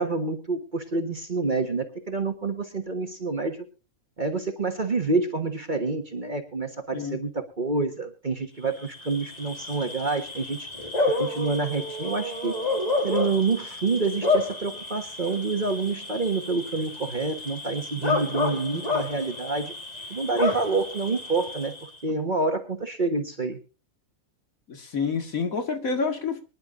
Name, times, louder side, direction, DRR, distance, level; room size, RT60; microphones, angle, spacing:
voice 1, 0.0-3.6 4.2-10.7 11.2-12.5 13.0-19.7 20.1-23.6, right 3 dB, 35° right, 1.6 m, -27 dB
Bark / Cricket, 8.7-22.0, left 3 dB, 30° left, 2.4 m, -30 dB
voice 2, 24.7-26.4, left 5 dB, 80° left, 2.5 m, -28 dB
24.5 x 11.0 x 2.6 m
omnidirectional pair, 1.4 m